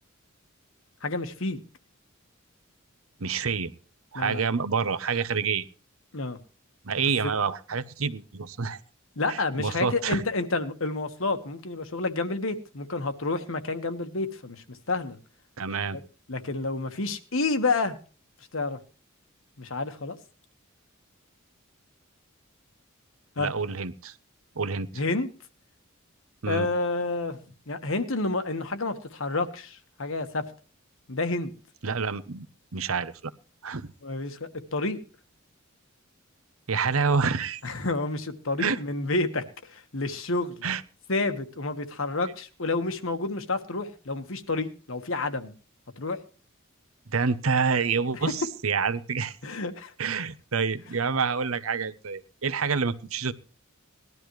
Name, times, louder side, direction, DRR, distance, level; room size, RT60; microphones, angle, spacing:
voice 1, 1.0-1.6 4.1-4.4 6.1-6.4 9.2-15.2 16.3-17.9 18.5-18.8 19.6-20.2 23.4-23.5 25.0-25.3 26.5-27.4 27.7-30.4 31.1-31.5 34.0-35.0 37.6-39.4 39.7-40.6 41.1-45.5 46.0-46.2 49.4-49.9, left 3 dB, 70° left, 9 dB, 1.4 m, -29 dB
voice 2, 3.2-3.7 4.1-5.7 6.8-8.8 9.3-10.2 15.6-16.0 23.4-24.1 24.6-24.9 26.4-26.7 31.8-32.5 32.7-33.3 33.6-33.9 36.7-37.6 38.6-38.8 40.6-40.8 47.1-49.4 50.0-53.3, right 5 dB, 85° right, 14 dB, 0.9 m, -27 dB
19.0 x 12.0 x 3.2 m, 0.36 s
head